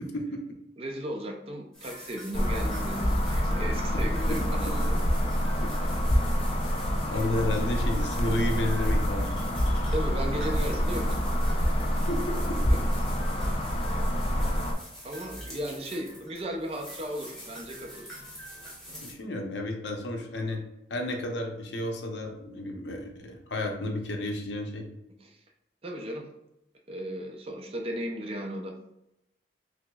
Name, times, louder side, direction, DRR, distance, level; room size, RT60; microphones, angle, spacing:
voice 1, 0.8-5.1 5.7-5.9 7.1-7.2 9.6-11.2 12.7-12.8 13.4-13.7 15.0-18.1 25.2-25.4 25.8-26.3 26.9-28.7, right 1 dB, 30° right, 2 dB, 0.4 m, -36 dB
sound 1, 1.7-19.1, equal, 5° left, 1.0 m, -45 dB
sound 2, 2.3-14.7, equal, 30° left, 0.4 m, -27 dB
voice 2, 7.0-9.4 12.1-12.6 19.0-20.6 20.9-24.9, left 1 dB, 75° left, 3 dB, 0.6 m, -32 dB
5.8 x 2.0 x 2.2 m, 0.88 s
head